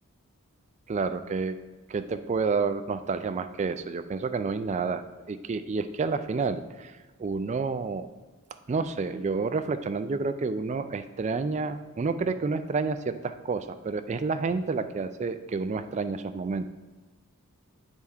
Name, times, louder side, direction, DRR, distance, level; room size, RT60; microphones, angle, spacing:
voice 1, 0.9-1.6 1.9-8.1 8.7-16.6, right 4 dB, 30° right, 10 dB, 0.3 m, -29 dB
9.7 x 3.6 x 4.3 m, 1.2 s
head